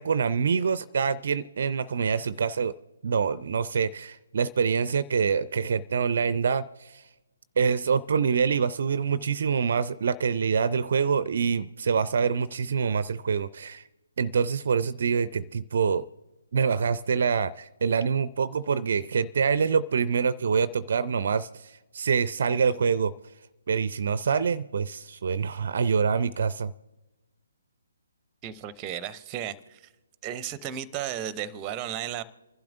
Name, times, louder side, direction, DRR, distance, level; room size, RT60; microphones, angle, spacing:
voice 1, 0.0-2.7 3.0-7.0 7.6-13.8 14.2-16.1 16.5-23.1 23.7-26.7, right 6 dB, 50° right, 18 dB, 0.4 m, -25 dB
voice 2, 28.4-29.9 30.2-32.2, right 10 dB, 20° right, 16 dB, 0.7 m, -34 dB
28.0 x 12.0 x 2.6 m, 1.1 s
figure-of-eight pair, 135°, 0 cm